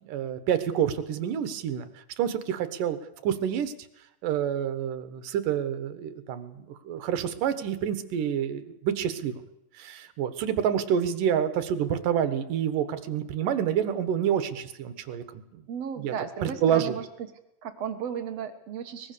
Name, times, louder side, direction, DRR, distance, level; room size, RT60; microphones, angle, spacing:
voice 1, 0.0-1.9 2.2-3.0 3.2-3.7 4.2-9.3 9.8-15.6 16.0-16.1 16.4-16.9, right 9 dB, 70° right, 11 dB, 2.9 m, -28 dB
voice 2, 15.7-17.1 17.6-19.1, right 8 dB, 55° right, 7 dB, 2.1 m, -34 dB
23.5 x 20.5 x 6.9 m, 0.86 s
omnidirectional pair, 4.0 m